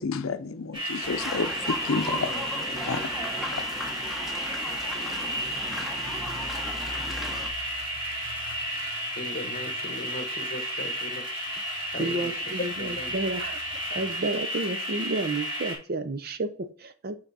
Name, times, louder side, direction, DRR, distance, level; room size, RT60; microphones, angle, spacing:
voice 1, 0.0-2.3 2.9-3.0 3.5-3.6, left 4 dB, 75° left, 0.6 m, -30 dB
sound 1, 0.7-15.8, equal, 25° right, 3.3 m, -32 dB
sound 2, 1.0-7.5, left 1 dB, ahead, 1.0 m, -36 dB
voice 2, 1.9-3.4 4.7-5.3 9.1-11.2 11.9-12.5 12.8-13.1, left 1 dB, 45° left, 0.9 m, -39 dB
sound 3, 5.3-14.3, right 1 dB, 65° right, 1.3 m, -48 dB
voice 3, 12.0-13.6 14.0-17.2, right 2 dB, 45° right, 0.6 m, -31 dB
5.9 x 4.9 x 4.1 m
head